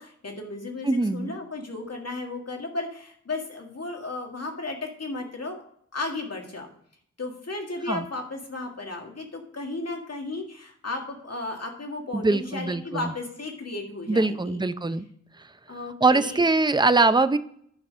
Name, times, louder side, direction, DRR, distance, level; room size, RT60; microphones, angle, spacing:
voice 1, 0.0-5.6 5.9-6.7 7.2-14.6 15.7-16.4, left 2 dB, 55° left, 2 dB, 1.9 m, -34 dB
voice 2, 0.8-1.3 7.9-8.0 12.1-13.1 14.1-15.0 16.0-17.4, right 3 dB, 15° right, 11 dB, 0.5 m, -22 dB
10.5 x 5.8 x 5.5 m, 0.66 s
wide cardioid pair, 85°, 30 cm